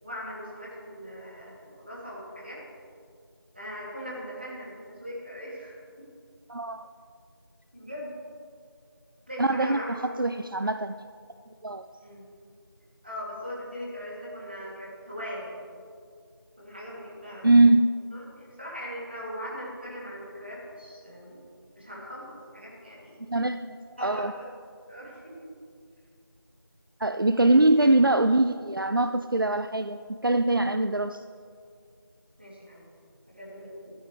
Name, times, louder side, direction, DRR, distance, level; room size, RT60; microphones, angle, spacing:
voice 1, 0.0-2.6 3.5-5.8 7.7-8.1 9.3-10.1 12.0-12.2 13.0-15.6 16.6-17.5 18.1-21.4 21.7-23.2 24.0-24.5 24.9-25.5 27.5-27.6 32.4-32.8 33.3-33.9, equal, 25° right, -6 dB, 2.9 m, -40 dB
voice 2, 6.5-6.9 9.4-9.8 10.2-11.0 11.6-11.8 17.4-17.9 23.3-24.3 27.0-31.2, right 2 dB, 60° right, 8 dB, 0.4 m, -22 dB
15.5 x 13.0 x 3.4 m, 2.2 s
figure-of-eight pair, 180°, 13 cm